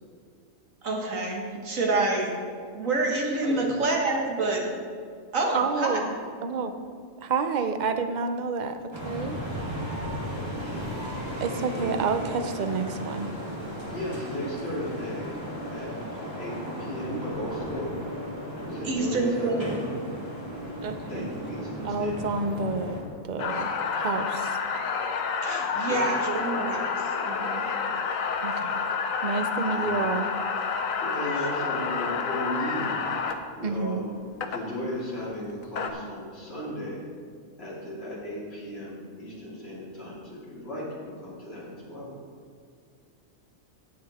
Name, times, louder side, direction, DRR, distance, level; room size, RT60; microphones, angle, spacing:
voice 1, 0.8-2.3 2.7-4.6 5.3-6.0 18.8-19.9 25.4-26.9 27.2-27.7, right 2 dB, 75° right, 0 dB, 2.0 m, -27 dB
voice 2, 3.4-3.8 10.5-11.1 11.7-12.0 13.9-15.3 15.7-15.9 16.4-17.9 18.6-19.8 21.1-22.3 25.8-26.1 29.7-29.9 31.0-33.0 33.6-37.0 37.6-42.1, left 1 dB, 50° left, -7 dB, 3.3 m, -35 dB
voice 3, 5.5-6.1 6.4-6.7 7.2-8.8 9.0-9.4 11.4-13.3 20.8-21.3 21.8-24.6 28.4-28.8 29.2-30.3 33.6-34.1, right 4 dB, 45° right, 8 dB, 0.6 m, -29 dB
sound 1, 8.9-23.0, equal, 20° right, 2.3 m, -35 dB
sound 2, 23.4-33.3 34.4-34.6 35.5-35.9, left 5 dB, 80° left, 1.2 m, -29 dB
17.0 x 6.0 x 4.3 m, 2.1 s
omnidirectional pair, 1.4 m